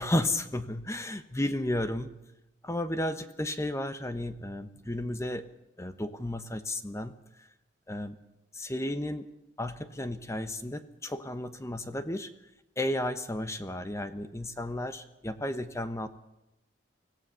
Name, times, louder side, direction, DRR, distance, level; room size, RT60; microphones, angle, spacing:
voice 1, 0.0-2.1 2.6-5.5 5.8-7.1 7.9-8.2 8.6-9.3 9.6-12.3 12.8-16.1, left 1 dB, 15° left, 10 dB, 1.1 m, -33 dB
25.0 x 16.5 x 7.0 m, 0.92 s
head